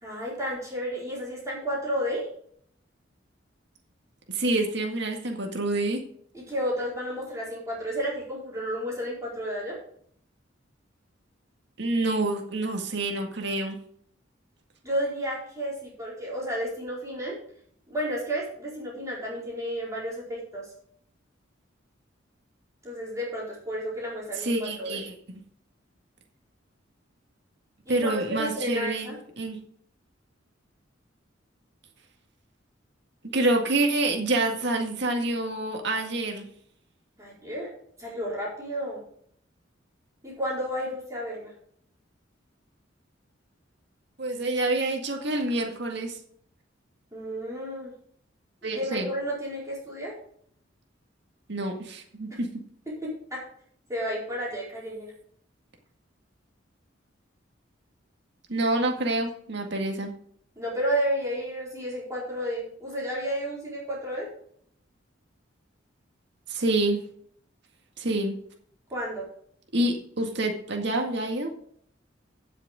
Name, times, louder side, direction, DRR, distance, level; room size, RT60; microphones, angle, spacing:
voice 1, 0.0-2.3 6.3-9.7 14.8-17.4 17.9-20.7 22.8-25.0 27.9-29.2 37.2-37.7 38.0-39.0 40.2-41.5 47.1-47.9 48.7-50.1 53.0-53.4 53.9-55.1 60.6-64.3 68.9-69.3, equal, 15° right, -6 dB, 4.7 m, -32 dB
voice 2, 4.3-6.0 11.8-13.8 24.4-25.1 27.9-29.1 29.4-29.6 33.3-36.5 44.2-46.2 48.6-49.1 51.5-52.5 58.5-60.1 66.5-67.0 68.0-68.4 69.7-71.5, right 2 dB, 65° right, 2 dB, 2.0 m, -27 dB
16.0 x 6.5 x 3.7 m, 0.64 s
head